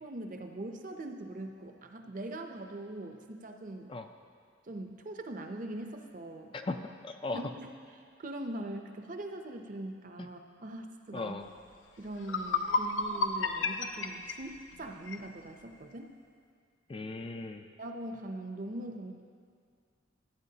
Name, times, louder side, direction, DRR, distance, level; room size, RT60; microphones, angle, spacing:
voice 1, 0.0-3.9 4.6-6.5 7.3-7.7 8.2-11.3 12.0-16.1 17.8-19.2, right 1 dB, 45° right, 4 dB, 0.6 m, -41 dB
voice 2, 6.5-7.4 10.2-10.3 11.1-11.5 16.9-17.7, left 3 dB, 25° left, 6 dB, 0.3 m, -38 dB
sound 1, 11.7-11.8 12.2-15.3, left 4 dB, 85° left, 0.5 m, -32 dB
14.5 x 8.9 x 2.8 m, 2.2 s
head